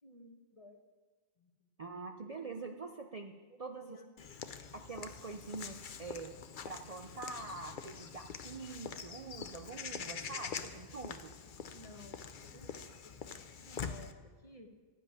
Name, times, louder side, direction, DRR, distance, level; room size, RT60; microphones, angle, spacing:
voice 1, 0.0-0.8 1.4-1.7 3.5-4.1 11.4-14.7, left 1 dB, 30° left, 4 dB, 1.3 m, -56 dB
voice 2, 1.8-3.3 3.6-4.0 4.7-6.3 6.7-11.3, right 3 dB, 40° right, 4 dB, 0.7 m, -45 dB
Walk footsteps / Bird vocalization bird call bird song, 4.2-14.1, left 6 dB, 50° left, 0.8 m, -45 dB
15.5 x 5.2 x 9.7 m, 1.4 s
omnidirectional pair, 1.2 m